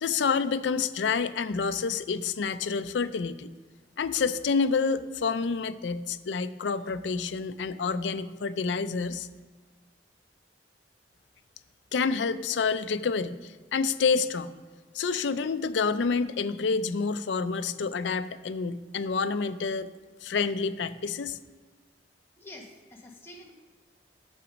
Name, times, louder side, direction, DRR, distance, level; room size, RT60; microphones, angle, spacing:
voice 1, 0.0-3.5 4.0-9.3 11.9-14.5 14.9-19.9 20.2-21.4, left 5 dB, 85° left, 12 dB, 0.5 m, -28 dB
voice 2, 22.4-23.5, left 1 dB, 15° left, -1 dB, 1.4 m, -47 dB
8.7 x 7.0 x 5.2 m, 1.4 s
head